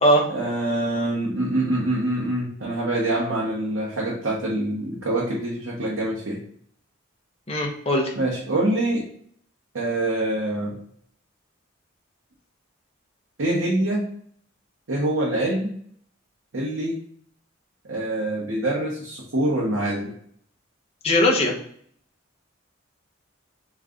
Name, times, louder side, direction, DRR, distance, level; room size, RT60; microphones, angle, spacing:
voice 1, 0.3-6.4 8.2-9.0 9.7-10.7 13.4-14.0 14.9-15.7 16.5-17.0 17.8-20.1, right 1 dB, 90° right, -4 dB, 1.0 m, -25 dB
voice 2, 7.5-8.1 21.0-21.5, equal, 30° left, 0 dB, 0.8 m, -19 dB
3.7 x 3.1 x 3.7 m, 0.62 s
head